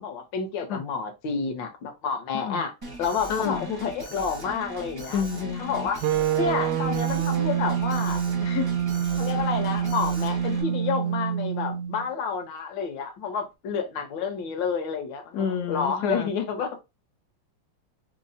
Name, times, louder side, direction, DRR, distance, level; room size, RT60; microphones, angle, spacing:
voice 1, 0.0-2.7 3.0-5.2 5.6-6.0 6.3-8.2 9.2-16.7, left 6 dB, 65° left, 1.5 m, -29 dB
Alarm, 2.8-10.6, right 1 dB, 25° right, 0.4 m, -40 dB
voice 2, 3.3-3.7 5.1-5.9 8.4-8.7 15.3-16.3, left 7 dB, 80° left, 0.9 m, -29 dB
sound 1, 6.0-12.1, right 9 dB, 80° right, 0.9 m, -26 dB
5.3 x 2.0 x 2.7 m
omnidirectional pair, 2.3 m